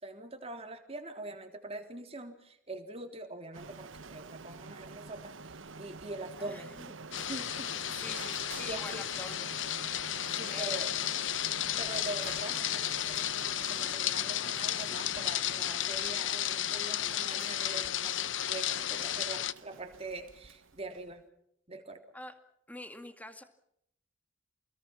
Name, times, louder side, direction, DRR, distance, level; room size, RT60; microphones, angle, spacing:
voice 1, 0.0-6.7 7.2-7.7 8.1-8.3 8.6-9.1 10.3-10.9 11.8-21.2 21.7-22.0, right 2 dB, 30° right, 5 dB, 3.6 m, -44 dB
Printer, 3.5-21.2, right 4 dB, 80° right, 1.1 m, -48 dB
voice 2, 6.4-6.9 8.0-9.5 10.1-10.8 22.1-22.4 22.7-23.4, left 1 dB, 10° left, 8 dB, 2.2 m, -46 dB
sound 1, 7.1-19.5, left 11 dB, 65° left, 0.9 m, -33 dB
29.0 x 21.0 x 6.0 m, 0.74 s
head